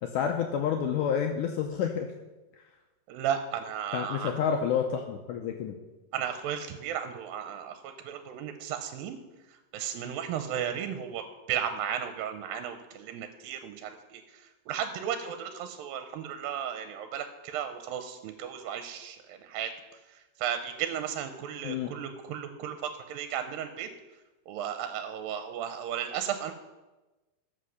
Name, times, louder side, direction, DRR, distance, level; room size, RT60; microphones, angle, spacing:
voice 1, 0.0-2.1 3.9-5.8 21.6-21.9, left 7 dB, 80° left, 4 dB, 2.0 m, -29 dB
voice 2, 3.1-4.3 6.1-9.2 9.5-19.7 20.1-23.9 24.5-26.5, right 9 dB, 90° right, 8 dB, 2.4 m, -35 dB
13.5 x 5.5 x 6.3 m, 1.1 s
omnidirectional pair, 4.1 m